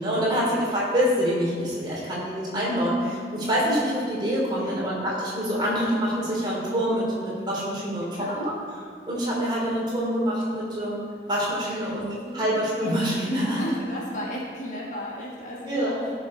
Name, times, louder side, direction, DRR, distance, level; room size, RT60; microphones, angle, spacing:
voice 1, 0.0-8.5 9.1-11.0 11.3-12.1 12.3-13.7 15.7-15.9, equal, 25° right, -5 dB, 3.0 m, -26 dB
voice 2, 8.0-8.5 11.6-12.0 12.3-13.0 13.4-16.0, left 1 dB, 45° left, -4 dB, 1.8 m, -36 dB
15.0 x 6.5 x 4.3 m, 2.1 s
head